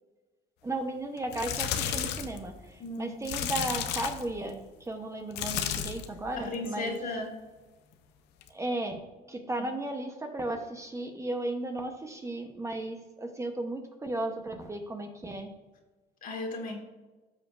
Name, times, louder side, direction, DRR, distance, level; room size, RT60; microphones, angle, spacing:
voice 1, 0.6-7.0 8.5-9.0 9.3-15.5, right 2 dB, 15° right, 4 dB, 0.8 m, -35 dB
sound 1, 1.2-2.4 3.3-4.3 5.3-6.1 6.5-6.9 8.4-8.5, left 9 dB, 90° left, 0.7 m, -32 dB
voice 2, 2.8-3.2 6.4-7.4 9.4-9.7 16.2-16.8, left 2 dB, 55° left, 2 dB, 1.7 m, -36 dB
13.5 x 5.0 x 2.5 m, 1.2 s
cardioid pair, 110°, 17 cm